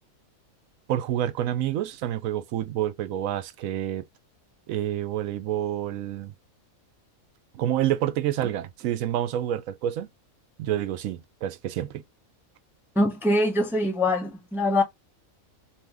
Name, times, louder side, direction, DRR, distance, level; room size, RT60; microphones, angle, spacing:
voice 1, 0.9-4.0 4.7-6.3 7.5-10.1 10.6-12.0, right 11 dB, 75° right, 1.0 m, -28 dB
voice 2, 13.0-14.8, left 1 dB, 5° right, 0.4 m, -23 dB
2.8 x 2.6 x 3.5 m
omnidirectional pair, 1.4 m